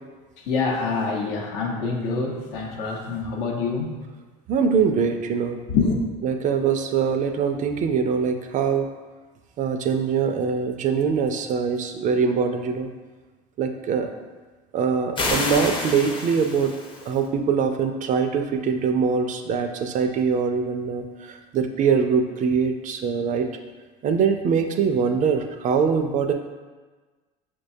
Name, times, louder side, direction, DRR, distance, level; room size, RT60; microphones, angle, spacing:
voice 1, 0.5-3.9 5.7-6.0, left 4 dB, 75° left, 1 dB, 0.7 m, -25 dB
voice 2, 4.5-5.6 6.2-8.9 9.6-12.9 13.6-14.1 14.7-16.7 17.1-23.5 24.0-26.3, right 6 dB, 40° right, 6 dB, 0.4 m, -23 dB
sound 1, 15.2-17.2, left 2 dB, 25° left, 0.6 m, -28 dB
5.8 x 2.2 x 2.6 m, 1.3 s
hypercardioid pair, 85°, 20 cm